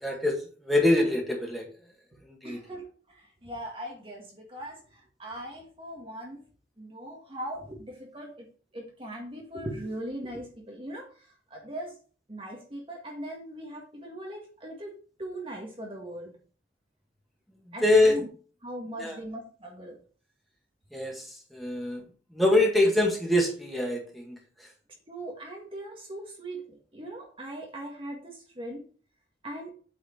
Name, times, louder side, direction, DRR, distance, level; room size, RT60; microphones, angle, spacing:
voice 1, 0.0-0.4 0.6-1.7 2.2-2.6 17.8-18.2 19.0-19.2 20.9-22.0 22.3-24.7, left 1 dB, ahead, -1 dB, 1.9 m, -24 dB
voice 2, 2.4-6.4 6.8-8.5 8.7-11.1 11.5-12.0 12.3-16.3 17.7-18.3 18.6-20.0 25.1-28.8 29.4-29.7, right 1 dB, 30° right, 0 dB, 1.6 m, -40 dB
8.7 x 4.8 x 4.4 m, 0.41 s
head